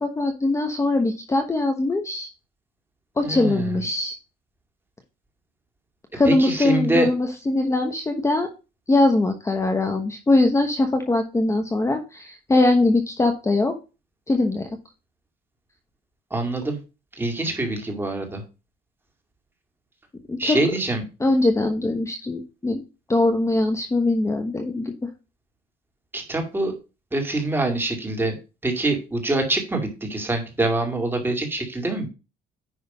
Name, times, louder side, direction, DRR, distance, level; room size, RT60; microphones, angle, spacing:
voice 1, 0.0-2.3 3.2-4.1 6.1-8.5 8.9-13.8 14.3-14.8 20.3-20.6 21.2-22.8 23.1-24.9, left 2 dB, 15° left, 5 dB, 1.1 m, -21 dB
voice 2, 3.2-3.8 6.2-7.1 16.3-16.8 17.2-18.4 20.4-21.0 26.1-26.7 27.1-28.3 28.6-32.1, right 2 dB, 15° right, 3 dB, 2.3 m, -25 dB
9.7 x 3.4 x 5.5 m, 0.31 s
cardioid pair, 110°, 17 cm